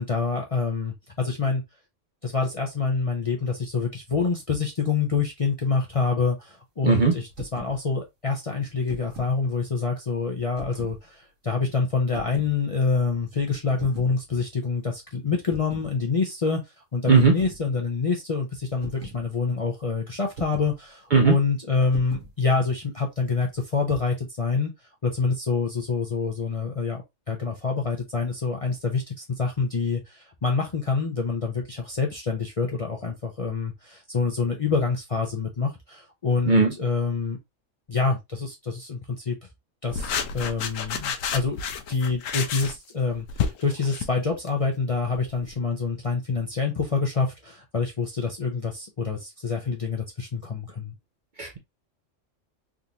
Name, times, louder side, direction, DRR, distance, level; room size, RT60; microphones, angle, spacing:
voice 1, 0.0-1.6 2.2-16.6 16.9-24.7 25.0-27.0 27.3-37.4 37.9-39.4 39.8-41.6 41.9-50.9, left 4 dB, 40° left, 0.5 m, -26 dB
voice 2, 6.8-7.2 17.1-17.4 21.1-21.4 36.5-36.7 51.4-51.6, right 4 dB, 50° right, 0.6 m, -18 dB
sound 1, 7.3-7.8 8.7-9.4 10.5-11.0 12.1-12.5 13.8-14.2 15.5-15.9 17.1-17.6 18.8-19.2 20.3-20.7 21.9-22.3, right 2 dB, 75° right, 1.5 m, -40 dB
sound 2, 39.9-44.6 45.1-45.5, left 7 dB, 85° left, 1.0 m, -30 dB
3.7 x 2.5 x 2.8 m
omnidirectional pair, 1.3 m